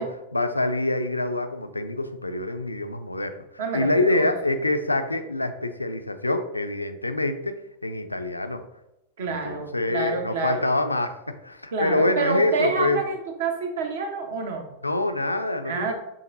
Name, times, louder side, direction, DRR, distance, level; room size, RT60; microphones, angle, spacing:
voice 1, 0.0-3.3 3.7-7.6 7.8-8.6 9.3-13.0 14.8-15.9, left 2 dB, 85° left, 8 dB, 0.3 m, -25 dB
voice 2, 3.6-4.3 9.2-10.6 11.7-14.6 15.6-15.9, right 4 dB, 60° right, 4 dB, 0.8 m, -28 dB
6.5 x 2.6 x 2.6 m, 0.92 s
figure-of-eight pair, 90°, 0 cm